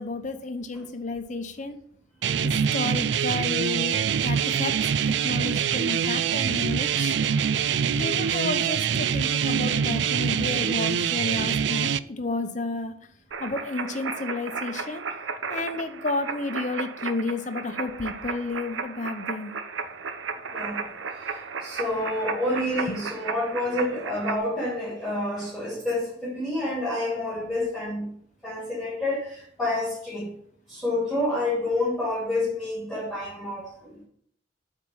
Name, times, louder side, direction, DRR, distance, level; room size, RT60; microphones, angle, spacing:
voice 1, 0.0-1.8 2.4-4.7 5.2-7.2 7.9-12.9 13.4-15.0 15.5-19.5, left 3 dB, 40° left, 8 dB, 0.8 m, -31 dB
sound 1, 2.2-12.0, right 8 dB, 65° right, 0.4 m, -24 dB
sound 2, 13.3-24.4, right 5 dB, 80° right, 0.8 m, -34 dB
voice 2, 20.5-28.1 28.4-30.3 30.7-34.1, left 1 dB, ahead, -8 dB, 3.0 m, -29 dB
8.5 x 4.5 x 7.2 m, 0.65 s
head